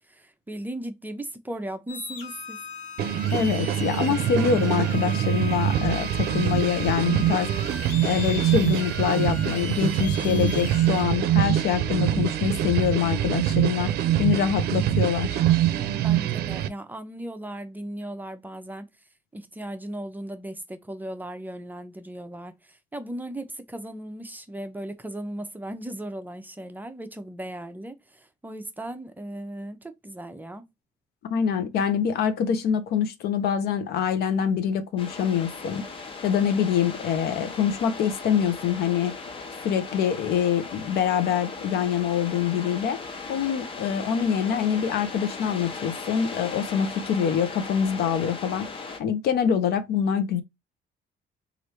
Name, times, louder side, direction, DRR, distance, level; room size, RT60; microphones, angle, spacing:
voice 1, 0.0-2.6 15.6-18.9 19.3-30.7, right 1 dB, 10° right, 0.6 m, -37 dB
sound 1, 1.9-11.0, left 6 dB, 50° left, 1.4 m, -39 dB
sound 2, 3.0-16.7, right 11 dB, 70° right, 0.5 m, -24 dB
voice 2, 3.3-7.5 8.0-15.4 31.3-35.8 36.2-39.2 39.6-43.0 43.3-48.6 49.0-50.4, left 8 dB, 70° left, 0.7 m, -25 dB
sound 3, 35.0-49.0, left 4 dB, 30° left, 0.8 m, -38 dB
3.3 x 2.5 x 2.8 m
cardioid pair, 110°, 17 cm